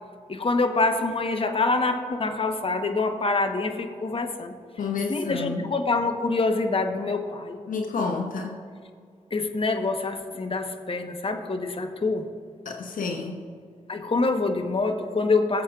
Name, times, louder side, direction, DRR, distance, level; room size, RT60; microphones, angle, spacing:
voice 1, 0.3-4.5 5.1-7.6 9.3-12.3 13.9-15.6, left 3 dB, 40° left, 6 dB, 1.1 m, -25 dB
voice 2, 4.8-5.6 7.7-8.6 12.6-13.4, left 4 dB, 70° left, 2 dB, 0.9 m, -29 dB
18.5 x 7.5 x 2.5 m, 2.1 s
supercardioid pair, 45°, 14 cm